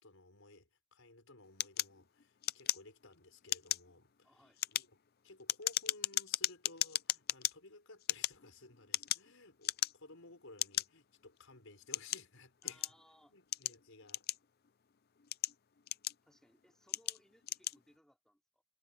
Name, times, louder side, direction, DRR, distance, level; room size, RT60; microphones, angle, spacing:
voice 1, 0.0-4.9 5.2-12.9 13.3-14.3, left 2 dB, 65° left, 5.6 m, -57 dB
sound 1, 1.6-3.1 3.4-3.9 4.4-7.5 8.0-9.3 9.6-10.1 10.6-10.9 11.5-13.0 13.5-14.7 15.2-16.4 16.9-17.2 17.4-17.8, left 14 dB, 45° left, 0.4 m, -36 dB
voice 2, 4.2-4.6 12.6-13.3 13.6-13.7 16.2-18.6, equal, ahead, 3.3 m, -67 dB
head